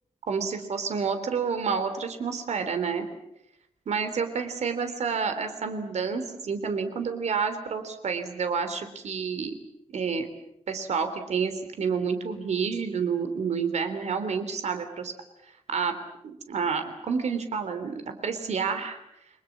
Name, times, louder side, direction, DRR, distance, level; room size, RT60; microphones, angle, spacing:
voice 1, 0.3-3.1 3.9-9.5 9.9-10.3 10.7-15.1 15.7-15.9 16.2-19.0, right 5 dB, 80° right, 8 dB, 3.4 m, -29 dB
29.5 x 22.0 x 7.4 m, 0.81 s
wide cardioid pair, 160°, 11 cm